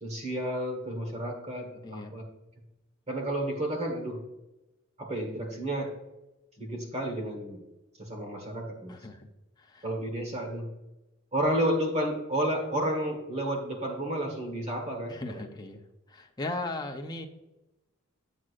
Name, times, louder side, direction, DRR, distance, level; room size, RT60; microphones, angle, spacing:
voice 1, 0.0-2.2 3.1-4.2 5.0-5.9 6.6-7.6 8.0-9.0 9.8-10.7 11.3-15.4, right 1 dB, 35° right, 2 dB, 1.4 m, -31 dB
voice 2, 8.9-9.3 9.6-9.9 15.1-15.8 16.1-17.3, left 2 dB, 20° left, 3 dB, 0.6 m, -37 dB
8.0 x 7.4 x 2.5 m, 1.0 s
head